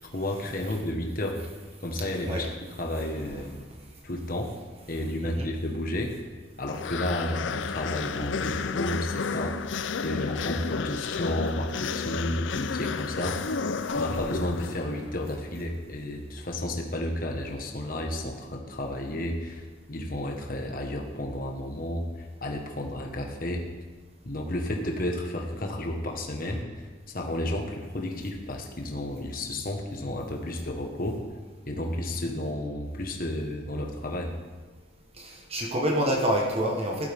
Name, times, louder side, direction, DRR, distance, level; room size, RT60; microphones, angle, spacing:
voice 1, 0.0-1.4 1.8-2.5 2.8-3.6 4.0-4.5 4.9-6.1 6.6-9.5 10.0-13.4 13.9-23.6 24.2-26.6 27.1-31.2 31.7-34.3, left 1 dB, 45° left, 2 dB, 1.5 m, -32 dB
sound 1, 6.7-15.1, left 5 dB, 70° left, 0.5 m, -32 dB
voice 2, 13.8-14.2 32.1-32.2 35.2-37.1, equal, 30° right, 0 dB, 1.3 m, -28 dB
15.5 x 12.0 x 3.6 m, 1.4 s
head